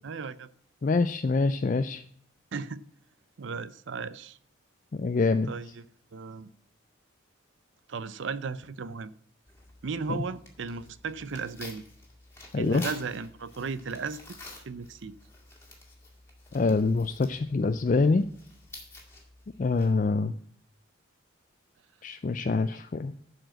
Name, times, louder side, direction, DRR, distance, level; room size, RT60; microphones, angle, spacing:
voice 1, 0.0-0.5 2.5-2.8 3.4-4.4 5.5-5.9 6.1-6.5 7.9-9.1 9.8-11.8 12.6-14.4 14.6-15.2, right 4 dB, 60° right, 0.5 m, -35 dB
voice 2, 0.8-2.0 4.9-5.5 12.5-12.8 16.5-18.3 19.6-20.3 22.0-23.1, left 3 dB, 40° left, 0.4 m, -25 dB
Tearing, 9.5-20.2, left 2 dB, 10° left, 2.0 m, -49 dB
11.5 x 4.9 x 7.7 m
head